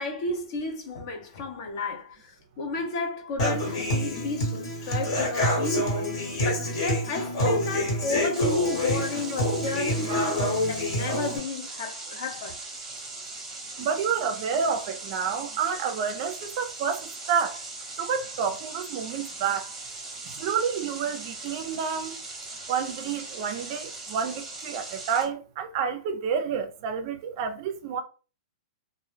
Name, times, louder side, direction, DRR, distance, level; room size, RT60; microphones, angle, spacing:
voice 1, 0.0-6.2 6.4-10.4 10.7-12.6, left 2 dB, 45° left, 0.6 m, -32 dB
Human voice / Acoustic guitar, 3.4-11.4, left 1 dB, 60° left, 1.2 m, -27 dB
sound 1, 8.3-25.2, right 3 dB, 15° right, 0.8 m, -40 dB
voice 2, 13.8-17.6 18.0-19.7 20.3-22.2 22.7-28.0, right 6 dB, 40° right, 0.4 m, -29 dB
2.1 x 2.0 x 3.1 m
hypercardioid pair, 155°, 4 cm